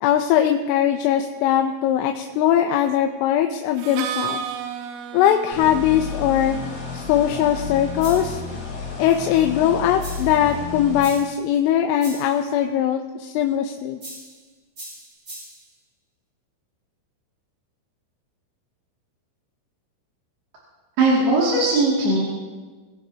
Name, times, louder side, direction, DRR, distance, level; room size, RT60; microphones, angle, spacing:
voice 1, 0.0-4.4 5.1-6.6 6.9-8.4 9.0-14.0, left 10 dB, 80° left, 4 dB, 3.1 m, -20 dB
Harmonica, 3.8-9.5, right 7 dB, 85° right, 3.5 m, -35 dB
sound 1, 5.5-11.0, left 5 dB, 65° left, 6.1 m, -32 dB
sound 2, 8.0-8.4 10.0-10.4 11.0-11.4 12.0-12.4 14.0-14.4 14.8-15.7, right 1 dB, 25° right, 4.9 m, -40 dB
voice 2, 21.0-22.2, right 2 dB, 55° right, -6 dB, 4.0 m, -19 dB
24.5 x 16.5 x 2.8 m, 1.4 s
omnidirectional pair, 5.8 m